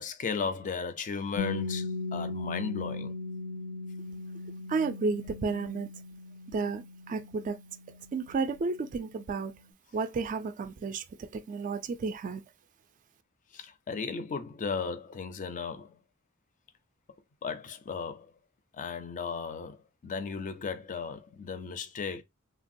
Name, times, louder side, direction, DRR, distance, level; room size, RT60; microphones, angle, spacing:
voice 1, 0.0-3.1 13.5-16.0 17.4-18.3 18.7-22.2, left 5 dB, 35° left, 0.4 m, -35 dB
Piano, 1.4-8.7, left 3 dB, 80° left, 0.6 m, -38 dB
voice 2, 4.7-5.9 6.5-7.6 8.1-9.5 9.9-12.4, right 4 dB, 35° right, 0.3 m, -32 dB
3.3 x 2.2 x 2.5 m
head